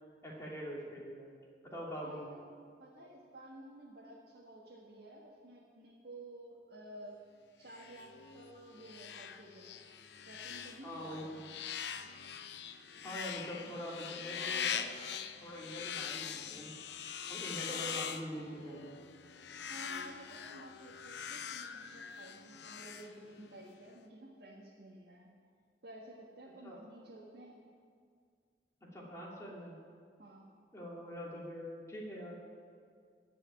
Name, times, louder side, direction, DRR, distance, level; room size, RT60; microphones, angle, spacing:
voice 1, 0.2-1.3 1.7-2.4 10.8-11.4 13.0-14.9 15.4-16.7 17.3-18.9 26.6-26.8 28.9-29.8 30.7-32.4, equal, 15° left, -5 dB, 2.8 m, -44 dB
voice 2, 2.0-2.5 2.8-7.2 7.6-9.7 10.3-11.2 11.5-11.7 17.6-17.9 19.7-25.3 25.8-27.6 30.2-30.5, right 1 dB, 65° right, -4 dB, 1.7 m, -53 dB
sound 1, 7.7-23.6, left 7 dB, 70° left, 0.6 m, -43 dB
16.5 x 5.6 x 9.7 m, 2.1 s
head